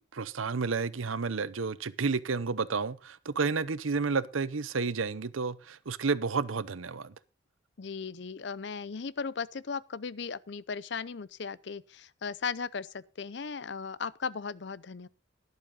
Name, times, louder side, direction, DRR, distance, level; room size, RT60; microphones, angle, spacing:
voice 1, 0.0-7.1, right 4 dB, 90° right, 0.8 m, -31 dB
voice 2, 7.8-15.1, left 5 dB, 60° left, 0.5 m, -37 dB
12.0 x 11.5 x 3.9 m
head